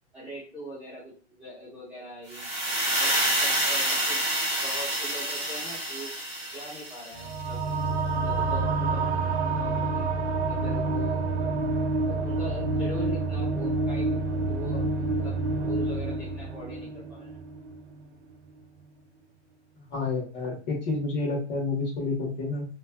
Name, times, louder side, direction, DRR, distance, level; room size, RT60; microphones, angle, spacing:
voice 1, 0.1-2.5 3.0-4.2 4.6-6.1 6.5-7.7 8.0-10.1 10.4-11.5 12.0-17.4, equal, 5° right, -11 dB, 1.1 m, -42 dB
sound 1, 2.3-7.3, right 1 dB, 25° right, 1.3 m, -28 dB
sound 2, 7.2-18.1, right 3 dB, 75° right, 0.8 m, -28 dB
voice 2, 19.9-22.7, left 3 dB, 40° left, -3 dB, 1.4 m, -29 dB
3.1 x 2.5 x 2.3 m, 0.36 s
hypercardioid pair, 165°, 34 cm